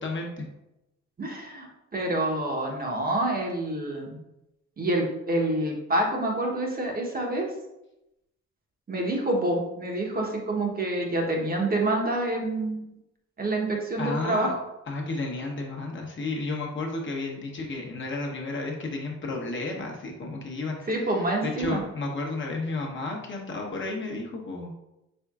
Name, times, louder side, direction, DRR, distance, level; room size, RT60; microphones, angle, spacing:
voice 1, 0.0-0.4 14.0-14.5 14.9-20.9 21.4-24.7, left 2 dB, 40° left, 0 dB, 0.9 m, -32 dB
voice 2, 1.2-4.2 4.8-7.5 8.9-12.9 13.4-14.6 20.9-21.8, right 1 dB, 30° right, 0 dB, 0.9 m, -27 dB
4.4 x 3.6 x 2.4 m, 0.91 s
cardioid pair, 90°, 30 cm